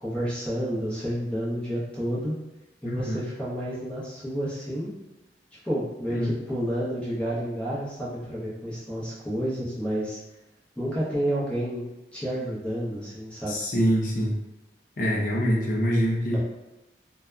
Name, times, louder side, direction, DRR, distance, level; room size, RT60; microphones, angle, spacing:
voice 1, 0.0-2.3 2.8-4.9 5.5-10.2 10.8-13.6 16.3-16.4, equal, 5° left, -8 dB, 0.7 m, -30 dB
voice 2, 2.8-3.2 6.1-6.3 13.5-14.4 15.0-16.4, equal, 45° left, -3 dB, 0.6 m, -25 dB
2.7 x 2.2 x 2.2 m, 0.97 s
head